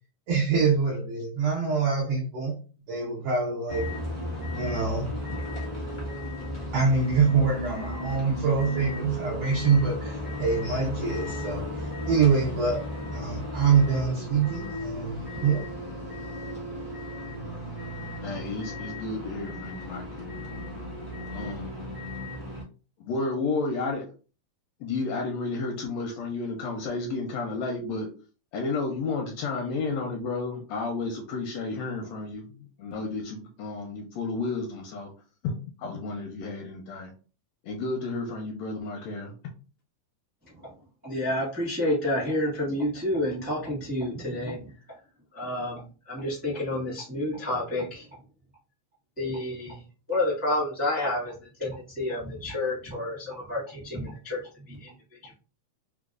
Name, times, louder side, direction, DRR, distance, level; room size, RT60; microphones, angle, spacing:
voice 1, 0.3-2.6 2.9-3.9 4.5-5.1 6.7-12.9 13.1-15.6, right 5 dB, 75° right, -3 dB, 1.4 m, -25 dB
sound 1, 3.7-22.6, left 1 dB, 50° left, 0.5 m, -35 dB
voice 2, 18.2-20.4 21.3-21.8 23.0-24.0 24.8-28.1 28.5-35.1 35.4-37.1 37.6-39.3, left 3 dB, 80° left, 2 dB, 1.5 m, -32 dB
voice 3, 41.0-44.7 45.3-45.8 46.1-48.1 49.2-49.8 50.1-54.9, left 1 dB, 15° right, -7 dB, 0.4 m, -29 dB
4.7 x 2.0 x 2.4 m, 0.36 s
omnidirectional pair, 3.4 m